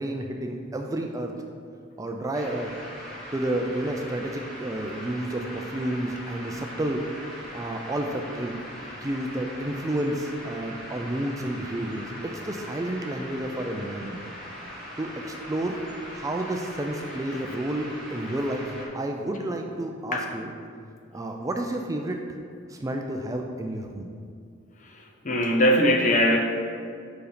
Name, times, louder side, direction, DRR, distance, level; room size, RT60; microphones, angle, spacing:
voice 1, 0.0-1.3 2.0-2.7 3.3-7.0 7.5-8.6 9.0-14.2 15.0-15.8 16.1-20.5 21.1-22.2 22.7-24.1, right 1 dB, 15° right, 3 dB, 0.3 m, -30 dB
sound 1, 2.3-18.9, equal, 5° left, 1.3 m, -41 dB
voice 2, 24.9-26.4, equal, 40° left, 1 dB, 0.7 m, -21 dB
5.1 x 4.8 x 5.0 m, 2.3 s
head